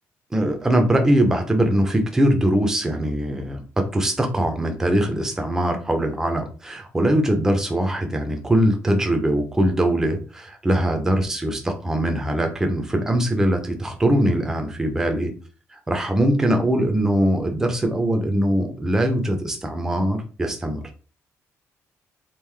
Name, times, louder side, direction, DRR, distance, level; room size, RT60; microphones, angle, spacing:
voice 1, 0.3-15.3 15.7-20.8, right 1 dB, 10° right, 4 dB, 0.6 m, -21 dB
3.7 x 2.5 x 3.2 m, 0.36 s
cardioid pair, 155°, 5 cm